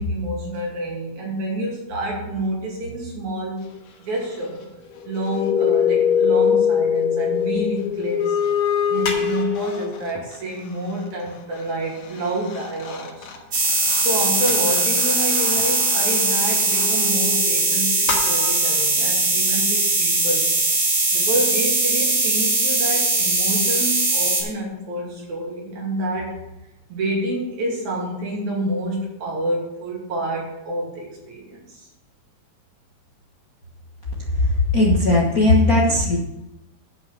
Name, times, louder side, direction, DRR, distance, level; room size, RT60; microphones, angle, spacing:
voice 1, 0.0-3.6 4.0-4.6 5.1-8.4 8.9-13.3 14.0-20.5 20.8-26.4 26.9-31.9, right 1 dB, 70° right, -3 dB, 4.0 m, -28 dB
sound 1, 5.0-10.4 12.2-12.3 12.5-18.0, left 8 dB, 65° left, 2.5 m, -24 dB
sound 2, 6.8-6.9 8.0-8.1 9.0-10.7 11.3-11.4 12.4-12.5 13.5-13.6 14.5-15.1 15.6-15.7 16.7-16.8 17.8-18.9, left 4 dB, 85° left, 3.3 m, -32 dB
sound 3, 13.5-24.4, right 3 dB, 45° right, 3.1 m, -20 dB
voice 2, 34.7-36.2, left 2 dB, 45° left, -4 dB, 1.2 m, -17 dB
10.5 x 6.0 x 6.5 m, 0.92 s
omnidirectional pair, 3.5 m